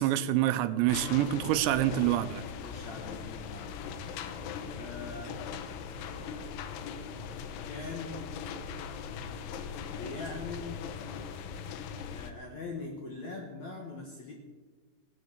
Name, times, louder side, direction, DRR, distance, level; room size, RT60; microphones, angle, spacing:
voice 1, 0.0-2.4, right 13 dB, 85° right, 12 dB, 2.8 m, -26 dB
sound 1, 0.9-12.3, left 7 dB, 85° left, 3.3 m, -40 dB
voice 2, 2.6-3.8 4.7-5.3 7.6-8.3 9.9-10.9 12.1-14.3, left 3 dB, 65° left, 1 dB, 1.9 m, -42 dB
Guitar, 4.3-11.6, equal, 15° left, 2.2 m, -53 dB
16.5 x 9.7 x 6.6 m, 1.4 s
omnidirectional pair, 5.3 m